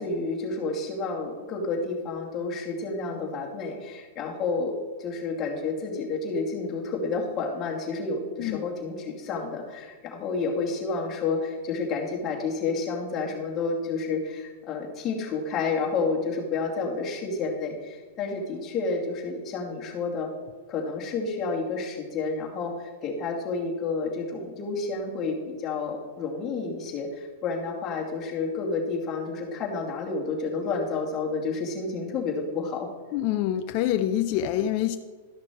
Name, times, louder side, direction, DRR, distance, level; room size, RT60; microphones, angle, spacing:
voice 1, 0.0-20.3 20.7-32.9, left 4 dB, 30° left, -2 dB, 2.4 m, -30 dB
voice 2, 33.1-35.0, left 11 dB, 45° left, 8 dB, 0.5 m, -26 dB
13.0 x 5.9 x 4.6 m, 1.4 s
hypercardioid pair, 130°, 0 cm